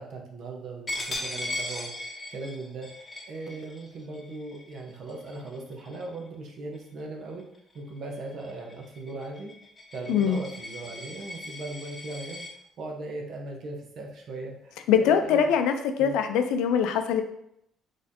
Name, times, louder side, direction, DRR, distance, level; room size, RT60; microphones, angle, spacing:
voice 1, 0.0-1.9 2.3-7.4 7.7-9.5 9.9-12.4 12.8-15.5 16.0-16.2, right 2 dB, 60° right, 1 dB, 0.9 m, -38 dB
Coin (dropping), 0.9-6.3 6.7-7.0 7.4-12.5, left 1 dB, 25° left, 0.9 m, -39 dB
voice 2, 14.9-17.2, left 8 dB, 90° left, 7 dB, 0.4 m, -23 dB
4.0 x 3.2 x 2.7 m, 0.75 s
cardioid pair, 105°, 0 cm